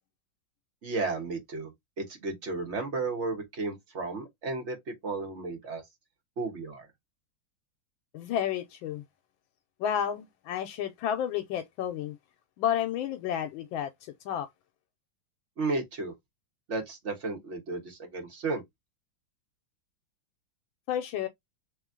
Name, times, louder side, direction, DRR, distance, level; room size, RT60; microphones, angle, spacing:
voice 1, 0.8-1.7 2.0-4.8 5.0-5.8 6.4-6.9 15.6-16.1 16.7-18.6, right 3 dB, 40° right, 1.3 m, -33 dB
voice 2, 8.1-9.0 9.8-12.2 12.6-14.5 20.9-21.3, left 9 dB, 80° left, 1.4 m, -31 dB
3.4 x 3.1 x 3.6 m
omnidirectional pair, 2.2 m